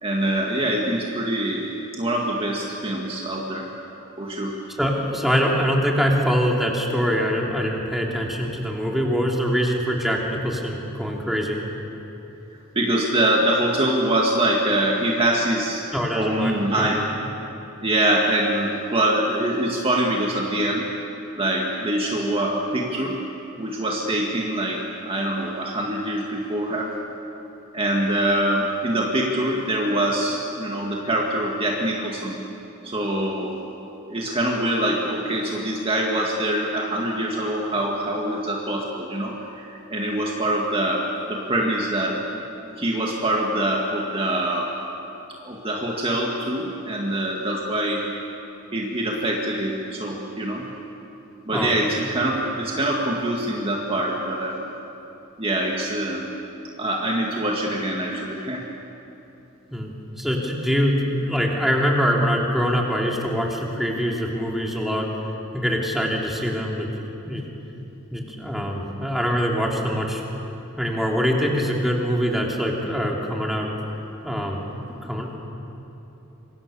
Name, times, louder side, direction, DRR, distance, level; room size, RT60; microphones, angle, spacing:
voice 1, 0.0-1.7 1.9-3.7 4.2-4.6 12.8-15.8 16.1-17.0 17.8-20.8 21.4-23.2 23.6-26.9 27.7-32.4 32.8-33.6 34.1-42.2 42.8-44.7 45.4-48.0 48.7-50.6 51.5-54.6 55.4-56.3 56.8-58.6, right 1 dB, 25° right, -1 dB, 2.0 m, -24 dB
voice 2, 4.8-11.7 15.9-17.1 51.5-51.7 59.7-59.9 60.2-65.1 65.5-66.9 67.2-67.5 68.1-70.2 70.8-73.7 74.2-74.7 75.0-75.4, equal, ahead, -2 dB, 3.2 m, -24 dB
27.0 x 24.0 x 7.0 m, 2.9 s
head